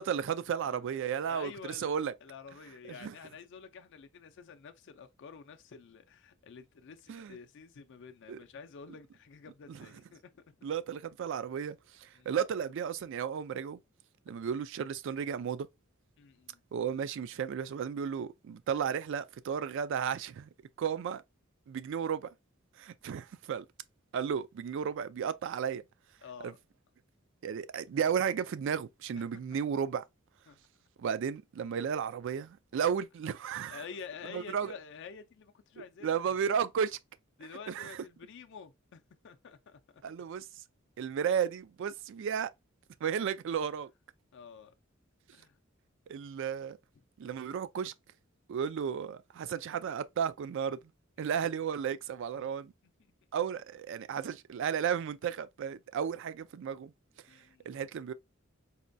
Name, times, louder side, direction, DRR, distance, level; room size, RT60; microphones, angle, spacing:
voice 1, 0.0-1.5 1.8-2.1 3.0-3.1 7.1-7.4 8.3-8.4 9.7-9.8 10.6-13.8 14.3-15.7 16.7-20.5 20.8-21.2 21.7-22.3 22.8-23.6 24.1-25.8 26.4-26.5 27.4-30.0 31.0-33.8 34.3-34.7 36.0-37.0 37.7-37.9 40.0-40.5 41.0-42.5 43.0-43.9 46.1-46.8 47.2-47.9 48.5-50.8 51.2-52.7 53.3-56.9 57.7-58.1, right 7 dB, 65° right, 0.3 m, -33 dB
voice 2, 0.6-1.0 1.3-10.6 12.1-12.4 16.2-16.6 26.2-26.6 29.3-29.6 30.5-30.6 33.7-36.4 37.4-40.0 44.3-44.7 45.3-45.6 51.2-51.4 52.4-52.5 57.3-57.7, left 6 dB, 60° left, 0.4 m, -49 dB
4.2 x 2.2 x 2.5 m
head